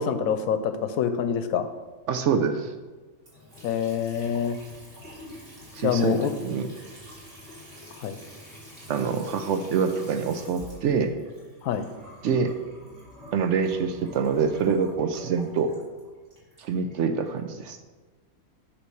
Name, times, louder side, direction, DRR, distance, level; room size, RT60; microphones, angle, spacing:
voice 1, 0.0-1.7 3.6-4.6 5.8-6.3 8.0-8.2 11.6-11.9, left 7 dB, 85° left, 10 dB, 1.0 m, -26 dB
voice 2, 2.1-2.7 5.8-6.7 8.9-11.1 12.2-12.5 13.3-15.7 16.6-17.8, right 6 dB, 70° right, 8 dB, 0.8 m, -25 dB
Water tap faucet / Sink (filling or washing) / Trickle dribble, 3.2-17.3, equal, 25° right, 2.3 m, -47 dB
8.2 x 3.3 x 6.3 m, 1.3 s
omnidirectional pair, 1.5 m